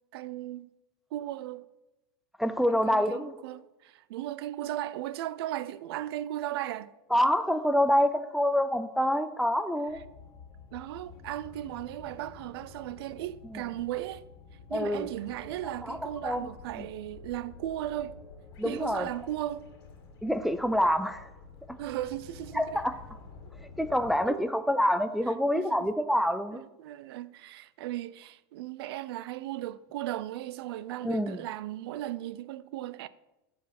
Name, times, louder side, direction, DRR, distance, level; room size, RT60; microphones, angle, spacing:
voice 1, 0.1-0.7 1.1-1.7 2.7-6.9 10.7-14.2 14.7-18.2 18.6-19.6 21.8-22.8 24.3-24.4 25.5-25.9 26.5-33.1, right 13 dB, 80° right, 0.4 m, -36 dB
voice 2, 2.4-3.4 7.1-10.0 13.5-13.6 14.7-15.1 15.8-16.5 16.8-16.9 18.6-19.1 20.2-21.3 21.7-21.8 22.5-23.0 23.8-26.6 31.0-31.4, equal, ahead, 0.3 m, -27 dB
sound 1, 9.9-24.3, left 4 dB, 80° left, 1.7 m, -50 dB
8.1 x 4.9 x 5.8 m
supercardioid pair, 145°, 13 cm